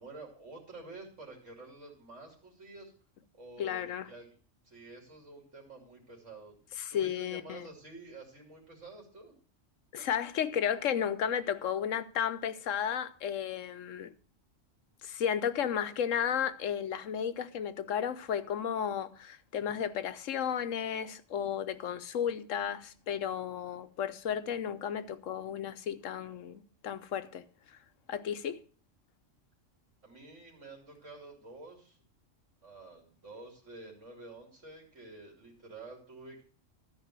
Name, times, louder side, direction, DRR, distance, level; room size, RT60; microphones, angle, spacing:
voice 1, 0.0-2.9 3.3-4.3 4.6-6.5 6.9-9.3 30.0-32.0 32.6-36.4, right 2 dB, 75° right, 3.2 m, -49 dB
voice 2, 3.6-4.1 6.8-7.7 9.9-14.1 15.0-27.4 28.1-28.6, left 8 dB, 85° left, 1.2 m, -33 dB
13.0 x 5.4 x 7.4 m
omnidirectional pair, 1.3 m